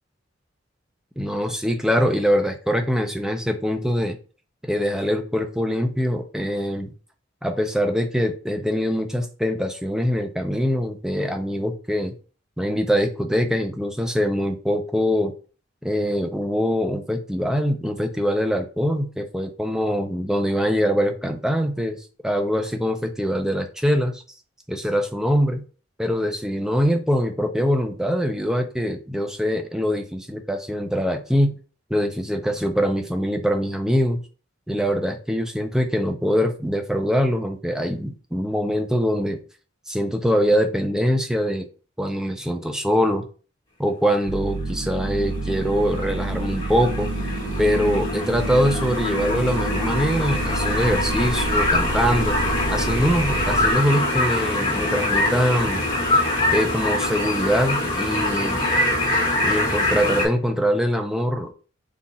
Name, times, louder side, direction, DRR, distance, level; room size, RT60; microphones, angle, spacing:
voice 1, 1.2-4.2 4.6-6.9 7.4-12.1 12.6-15.3 15.8-24.2 24.7-25.6 26.0-31.6 31.9-34.2 34.7-39.4 39.9-41.7 42.0-43.3 43.8-47.1 47.6-52.4 52.7-55.9 56.5-58.6 59.4-61.5, equal, 5° right, 4 dB, 0.5 m, -23 dB
sound 1, 44.3-53.7, right 2 dB, 65° right, 0.8 m, -29 dB
sound 2, 45.2-60.3, left 1 dB, 25° left, 1.6 m, -24 dB
3.9 x 2.4 x 4.2 m, 0.37 s
head